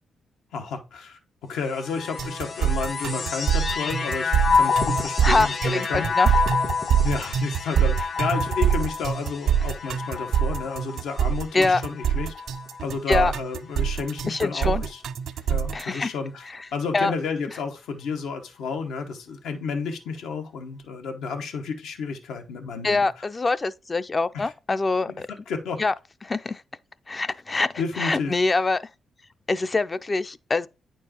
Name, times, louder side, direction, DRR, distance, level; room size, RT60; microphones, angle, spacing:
voice 1, 0.5-1.2 1.5-6.1 7.0-12.3 12.8-15.0 15.5-16.5 16.7-23.1 24.3-24.5 25.5-25.8 27.8-28.3, left 5 dB, 85° left, 1.0 m, -31 dB
sound 1, 1.6-13.1 13.8-14.6, left 5 dB, 55° left, 1.3 m, -29 dB
sound 2, 2.2-15.8, right 8 dB, 75° right, 0.3 m, -24 dB
voice 2, 5.2-6.3 11.5-11.8 13.1-13.3 14.3-14.8 15.7-16.1 16.9-17.1 22.8-25.3 25.8-25.9 26.2-26.6 27.1-28.9 29.5-30.7, left 3 dB, 35° left, 0.4 m, -24 dB
9.0 x 4.5 x 2.8 m
cardioid pair, 65°, 0 cm